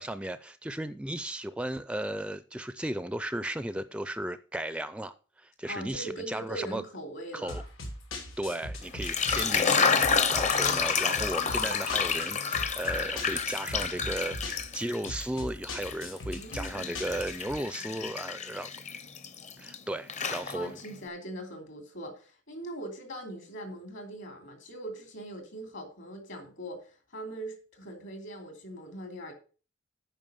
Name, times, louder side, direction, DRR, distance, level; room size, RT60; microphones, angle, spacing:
voice 1, 0.0-6.8 7.3-7.6 8.4-18.7 19.6-20.8, right 1 dB, 5° right, 0.4 m, -35 dB
voice 2, 5.7-7.6 16.3-17.0 20.5-29.3, right 1 dB, 70° left, 2.9 m, -41 dB
sound 1, 7.5-17.6, left 1 dB, 90° left, 2.9 m, -40 dB
sound 2, 8.9-15.3 15.6-19.8 20.1-20.9, left 5 dB, 35° left, 0.7 m, -29 dB
9.1 x 5.6 x 6.7 m
head